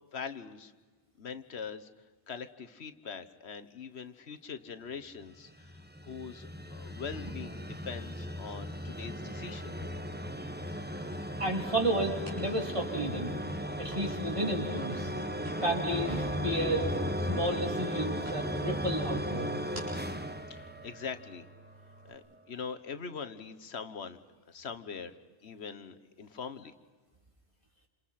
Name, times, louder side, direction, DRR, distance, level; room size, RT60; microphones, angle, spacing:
voice 1, 0.1-0.7 1.2-1.9 2.3-5.5 6.0-9.8 20.6-21.4 22.1-24.2 24.5-25.1 25.4-26.7, left 6 dB, 85° left, 10 dB, 1.4 m, -42 dB
sound 1, 5.3-21.4, equal, 10° right, 1.1 m, -36 dB
sound 2, 9.7-22.1, right 1 dB, 75° right, 7.5 m, -54 dB
voice 2, 11.4-13.3 13.8-15.1 15.6-16.9 17.2-19.6, right 1 dB, 30° right, 1 dB, 3.6 m, -32 dB
29.0 x 27.5 x 5.9 m, 1.4 s
omnidirectional pair, 1.1 m